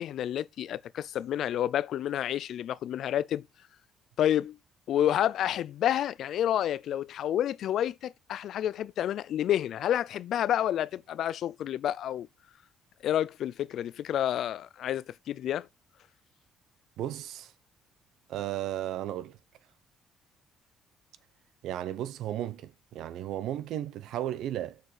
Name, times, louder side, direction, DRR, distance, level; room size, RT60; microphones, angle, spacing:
voice 1, 0.0-3.4 4.2-4.6 4.9-12.3 13.0-15.7, left 11 dB, 70° left, 0.4 m, -29 dB
voice 2, 17.0-17.5 18.3-19.4 21.6-24.8, right 12 dB, 80° right, 0.7 m, -34 dB
6.5 x 4.3 x 4.9 m
cardioid pair, 90°, 0 cm